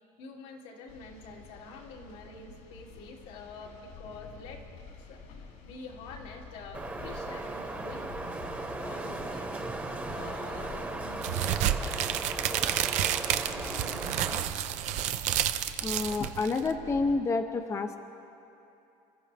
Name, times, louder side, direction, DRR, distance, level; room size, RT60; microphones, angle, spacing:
voice 1, 0.2-4.7 5.0-5.2 5.6-8.5 8.8-9.7 10.1-11.7, left 3 dB, 85° left, -2 dB, 2.7 m, -46 dB
sound 1, 0.9-17.1, left 5 dB, 70° left, 2.6 m, -47 dB
Wind, 6.7-14.4, right 2 dB, 10° right, 1.1 m, -37 dB
sound 2, 11.2-16.7, right 11 dB, 60° right, 0.6 m, -30 dB
voice 2, 15.8-18.0, left 3 dB, 20° left, 5 dB, 0.6 m, -29 dB
29.0 x 14.5 x 3.4 m, 2.8 s
cardioid pair, 150°, 13 cm